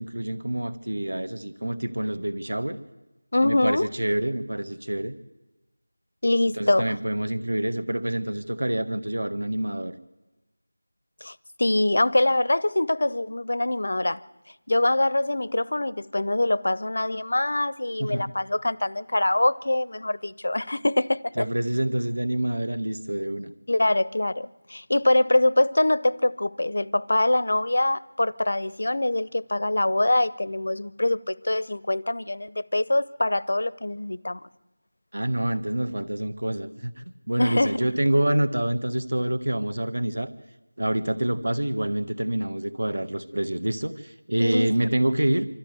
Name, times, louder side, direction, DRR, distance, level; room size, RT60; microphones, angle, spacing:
voice 1, 0.0-2.8 3.4-5.1 6.6-9.9 18.0-18.2 21.4-23.5 35.1-40.3 40.8-45.5, right 1 dB, 70° right, 11 dB, 1.6 m, -27 dB
voice 2, 3.3-3.9 6.2-6.9 11.2-14.2 14.7-21.5 23.7-34.4 37.4-37.9 44.4-44.7, left 1 dB, 45° left, 19 dB, 0.6 m, -24 dB
25.0 x 13.5 x 8.2 m, 1.1 s
figure-of-eight pair, 180°, 0 cm